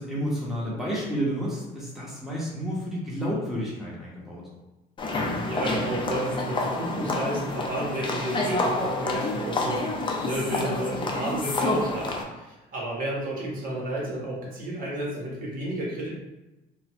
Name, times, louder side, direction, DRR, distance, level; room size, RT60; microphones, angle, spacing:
voice 1, 0.0-4.5, equal, ahead, -6 dB, 1.1 m, -30 dB
sound 1, 5.0-12.2, left 2 dB, 30° left, 0.6 m, -28 dB
voice 2, 5.2-9.9 10.2-16.1, right 1 dB, 55° right, -4 dB, 1.2 m, -31 dB
3.9 x 2.3 x 3.0 m, 1.0 s
cardioid pair, 110°, 17 cm